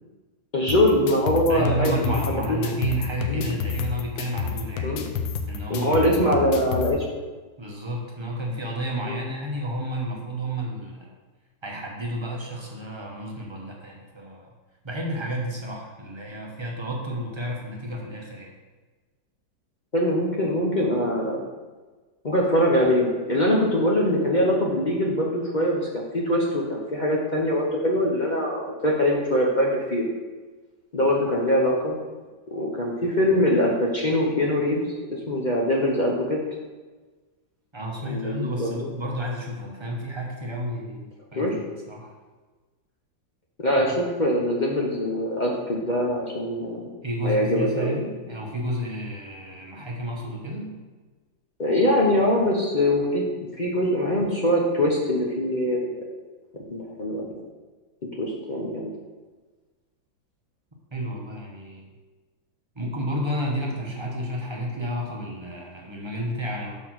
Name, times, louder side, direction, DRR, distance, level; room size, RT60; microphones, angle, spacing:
voice 1, 0.5-1.9 2.3-2.6 3.3-3.5 4.8-5.1 5.7-7.0 9.0-9.2 19.9-21.4 22.2-30.0 30.9-32.0 32.5-36.4 38.0-38.9 41.4-41.6 43.6-46.9 47.2-48.1 51.6-53.2 53.6-55.9 56.7-57.3 58.2-58.9, left 1 dB, 45° left, -2 dB, 0.5 m, -23 dB
sound 1, 0.7-6.9, left 6 dB, 85° left, 1.4 m, -30 dB
voice 2, 1.5-5.0 5.5-6.0 7.6-11.1 11.6-14.5 14.8-18.5 37.7-41.5 41.9-42.1 47.0-50.7 60.9-61.8 62.8-66.7, equal, 25° right, -2 dB, 0.6 m, -31 dB
5.6 x 4.3 x 6.0 m, 1.3 s
omnidirectional pair, 2.0 m